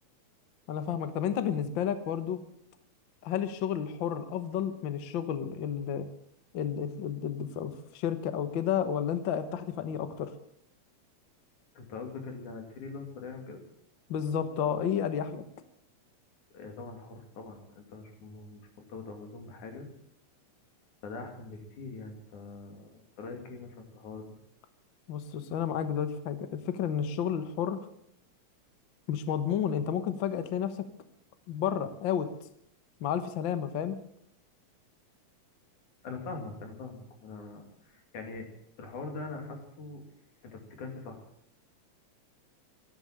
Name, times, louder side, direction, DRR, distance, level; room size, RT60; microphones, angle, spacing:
voice 1, 0.7-2.4 3.2-6.1 6.5-10.3 14.1-15.4 25.1-27.8 29.1-30.8 31.5-32.3 33.0-34.0, left 8 dB, 55° left, 10 dB, 1.5 m, -31 dB
voice 2, 11.8-13.6 16.5-18.6 18.9-19.9 21.0-24.2 36.0-38.5 38.8-40.0 40.4-41.2, left 3 dB, 90° left, 4 dB, 4.1 m, -42 dB
13.5 x 11.5 x 8.9 m, 0.71 s
omnidirectional pair, 3.3 m